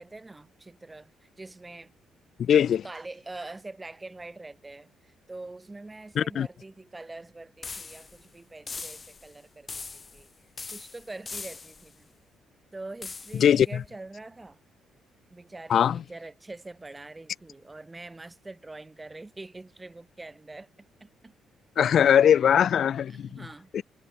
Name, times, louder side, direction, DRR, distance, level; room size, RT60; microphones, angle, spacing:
voice 1, 0.0-1.9 2.7-10.3 10.7-12.1 12.7-14.6 15.3-21.3 21.9-22.1 23.1-23.8, right 2 dB, 20° right, 3.4 m, -44 dB
voice 2, 2.4-2.8 6.2-6.5 13.4-13.7 15.7-16.0 21.8-23.4 23.7-23.8, left 9 dB, 60° left, 0.7 m, -21 dB
sound 1, 7.6-8.2 8.7-9.3 9.7-10.3 10.6-11.9 13.0-13.5, left 4 dB, 30° left, 1.9 m, -40 dB
cardioid pair, 90°, 0 cm